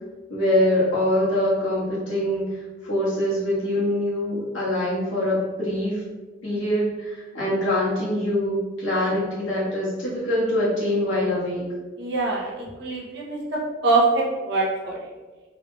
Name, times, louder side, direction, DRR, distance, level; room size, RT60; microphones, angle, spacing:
voice 1, 0.3-2.4 2.8-6.0 6.4-11.6, left 1 dB, 70° left, -8 dB, 1.5 m, -24 dB
voice 2, 12.0-15.1, right 3 dB, 55° right, -3 dB, 0.7 m, -24 dB
3.6 x 3.2 x 2.3 m, 1.3 s
head